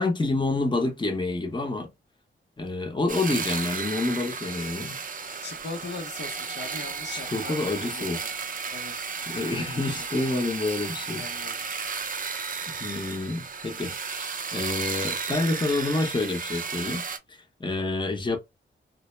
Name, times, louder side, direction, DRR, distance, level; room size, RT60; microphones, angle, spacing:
voice 1, 0.0-1.9 2.6-5.0 7.1-8.2 9.3-11.3 11.6-11.8 12.7-18.4, left 2 dB, 20° left, 0.7 m, -28 dB
sound 1, 3.1-17.2, right 5 dB, 40° right, 0.5 m, -34 dB
voice 2, 5.4-8.3 8.7-9.1 9.4-10.1 11.2-11.6, left 3 dB, 55° left, 0.6 m, -40 dB
2.1 x 2.0 x 3.0 m
cardioid pair, 65°, 21 cm